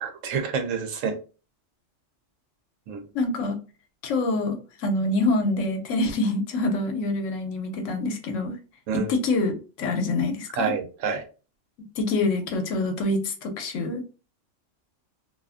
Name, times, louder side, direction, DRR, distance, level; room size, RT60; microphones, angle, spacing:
voice 1, 0.0-1.2 2.9-3.1 8.9-9.1 10.6-11.2, right 6 dB, 85° right, 1.0 m, -28 dB
voice 2, 3.1-3.6 4.0-8.6 8.9-10.7 11.8-14.1, left 2 dB, 80° left, 1.0 m, -26 dB
2.5 x 2.4 x 2.3 m
omnidirectional pair, 1.3 m